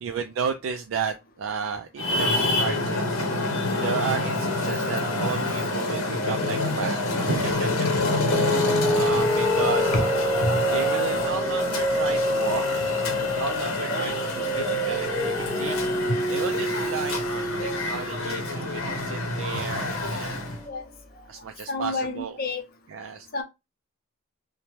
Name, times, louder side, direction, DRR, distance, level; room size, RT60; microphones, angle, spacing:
voice 1, 0.0-3.2 3.8-7.0 7.3-7.9 8.3-9.9 10.7-15.8 16.3-20.5 21.3-22.4 22.9-23.3, right 6 dB, 70° right, 0.3 m, -33 dB
Traffic noise roadway noise, 2.0-20.6, left 2 dB, 85° left, 0.8 m, -27 dB
sound 1, 8.0-20.8, equal, ahead, 0.6 m, -28 dB
voice 2, 21.7-22.6 23.3-23.4, left 2 dB, 45° left, 0.6 m, -29 dB
2.8 x 2.1 x 3.0 m
head